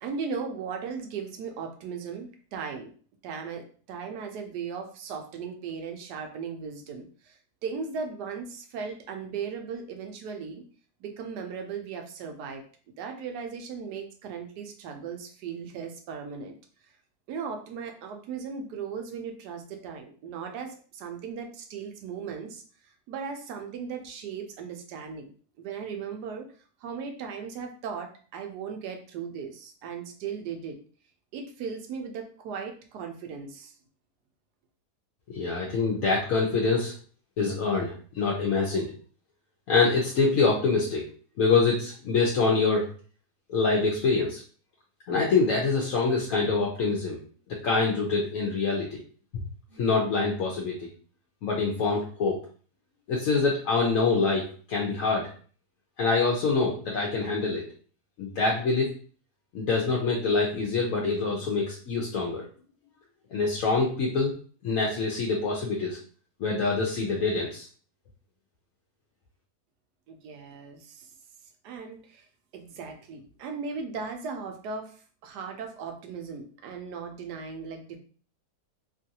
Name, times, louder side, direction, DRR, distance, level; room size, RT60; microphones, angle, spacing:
voice 1, 0.0-2.9 3.2-10.6 11.0-12.6 13.0-16.6 17.3-25.3 25.6-26.5 26.8-30.8 31.3-33.7 70.1-71.1 71.6-72.2 72.5-75.0 75.2-78.0, right 6 dB, 80° right, 4 dB, 1.2 m, -37 dB
voice 2, 35.3-36.9 37.4-38.9 39.7-41.0 41.4-42.9 43.5-44.4 45.1-47.2 47.5-49.0 49.7-50.9 51.4-52.4 53.1-55.3 56.0-57.6 58.2-58.9 59.5-62.5 63.3-64.4 64.6-66.0 66.4-67.7, left 4 dB, 65° left, -2 dB, 0.9 m, -25 dB
3.1 x 2.4 x 2.7 m, 0.42 s
omnidirectional pair, 1.7 m